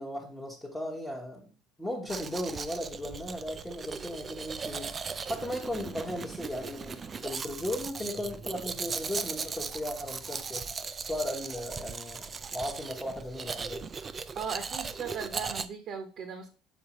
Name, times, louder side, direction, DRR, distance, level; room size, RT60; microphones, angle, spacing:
voice 1, 0.0-1.4 1.8-4.9 5.3-12.2 12.5-13.9, left 1 dB, 5° left, 1.0 m, -36 dB
Domestic sounds home sounds, 2.1-15.7, right 5 dB, 25° right, 0.4 m, -38 dB
voice 2, 14.3-16.5, right 6 dB, 45° right, 0.9 m, -38 dB
7.2 x 4.7 x 3.0 m
cardioid pair, 140°, 0 cm